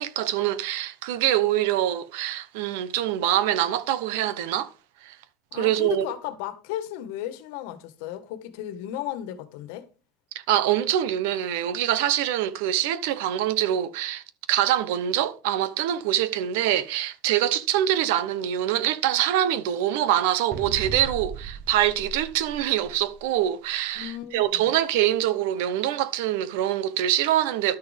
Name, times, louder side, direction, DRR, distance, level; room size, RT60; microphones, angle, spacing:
voice 1, 0.0-4.7 5.0-5.2 5.5-6.1 10.5-27.8, right 12 dB, 85° right, 0.9 m, -24 dB
voice 2, 5.5-9.9 23.9-24.7, left 12 dB, 80° left, 1.3 m, -35 dB
sound 1, 20.5-23.2, right 5 dB, 35° right, 1.2 m, -37 dB
12.0 x 6.4 x 3.4 m
cardioid pair, 150°, 0 cm